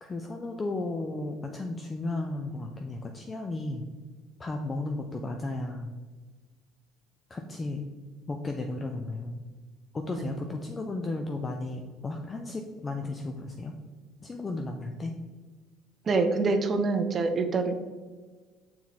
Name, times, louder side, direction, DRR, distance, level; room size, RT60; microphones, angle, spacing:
voice 1, 0.0-3.8 4.4-5.9 7.3-7.9 8.3-9.4 9.9-13.7 14.2-15.1, left 2 dB, 20° left, 4 dB, 0.5 m, -34 dB
voice 2, 16.1-17.7, right 3 dB, 30° right, 7 dB, 0.6 m, -25 dB
6.4 x 4.3 x 4.0 m, 1.4 s
cardioid pair, 130°, 0 cm